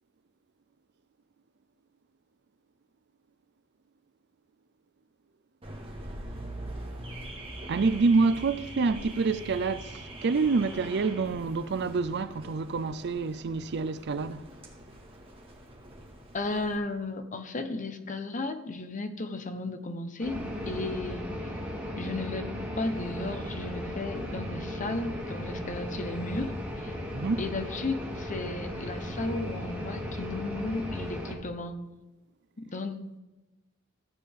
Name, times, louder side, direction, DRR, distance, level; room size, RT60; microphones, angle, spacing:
Car / Alarm, 5.6-16.8, right 1 dB, 30° right, 1.9 m, -43 dB
voice 1, 7.7-14.5 27.1-27.4, right 4 dB, 55° right, 0.5 m, -27 dB
voice 2, 16.3-21.3 22.0-26.5 26.8-26.9 27.4-31.8 32.7-33.2, left 2 dB, 40° left, 0.9 m, -34 dB
sound 1, 20.2-31.3, left 1 dB, 10° right, 2.7 m, -36 dB
14.0 x 8.3 x 3.7 m
head